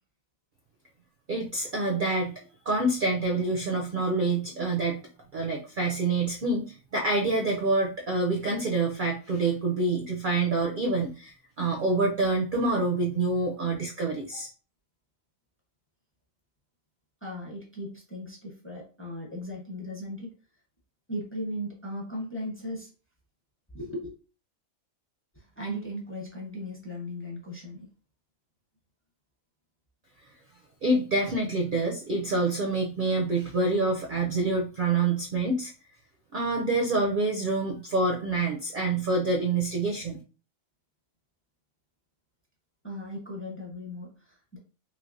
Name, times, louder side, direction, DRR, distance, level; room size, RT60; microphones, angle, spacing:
voice 1, 1.3-2.4 2.7-5.0 5.3-14.5 30.8-35.7 36.3-40.2, right 2 dB, 55° right, 1 dB, 0.6 m, -27 dB
voice 2, 17.2-20.3 21.1-22.9 23.7-24.1 25.3-27.9 42.8-44.6, equal, 10° left, -2 dB, 0.8 m, -37 dB
3.2 x 3.1 x 2.5 m, 0.36 s
omnidirectional pair, 1.4 m